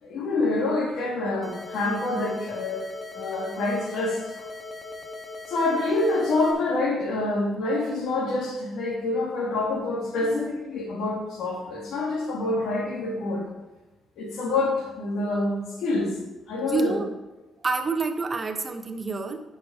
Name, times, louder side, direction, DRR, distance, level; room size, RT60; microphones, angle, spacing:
voice 1, 0.0-2.9 3.1-4.4 5.5-13.4 14.2-16.1 16.5-17.0, left 2 dB, 75° left, -1 dB, 2.8 m, -27 dB
sound 1, 1.4-6.5, left 2 dB, 30° left, 1.9 m, -39 dB
voice 2, 16.7-17.1 17.6-19.4, right 3 dB, 30° right, 7 dB, 1.0 m, -28 dB
9.3 x 6.4 x 5.0 m, 1.1 s
cardioid pair, 90°, 0 cm